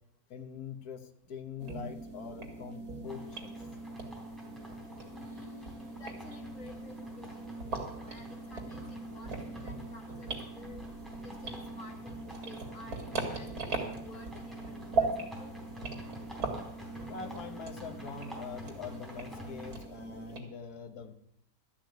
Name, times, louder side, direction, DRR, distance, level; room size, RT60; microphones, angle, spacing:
voice 1, 0.3-3.6 17.1-21.1, left 6 dB, 85° left, 7 dB, 1.7 m, -44 dB
sound 1, 1.6-20.4, right 3 dB, 90° right, 2.7 m, -39 dB
sound 2, 3.1-19.8, left 1 dB, ahead, 3.6 m, -51 dB
voice 2, 5.1-15.5, left 3 dB, 60° left, 1 dB, 2.5 m, -52 dB
12.5 x 6.1 x 9.2 m, 0.72 s
omnidirectional pair, 1.6 m